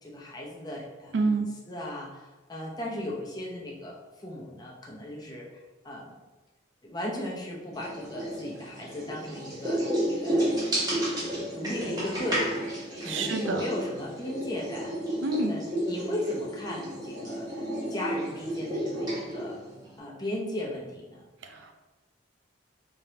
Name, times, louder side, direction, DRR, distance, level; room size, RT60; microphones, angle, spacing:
voice 1, 0.0-5.5 5.8-6.1 6.8-9.9 10.2-10.5 11.3-12.7 13.0-15.0 15.5-17.6 17.9-19.6 20.0-21.2, left 1 dB, 20° left, -3 dB, 0.6 m, -36 dB
voice 2, 1.1-1.5 13.0-13.7 15.2-15.5 21.4-21.7, right 3 dB, 80° right, 5 dB, 0.4 m, -28 dB
sound 1, 7.7-20.0, right 1 dB, 20° right, 1.0 m, -32 dB
3.5 x 3.4 x 2.8 m, 1.1 s
head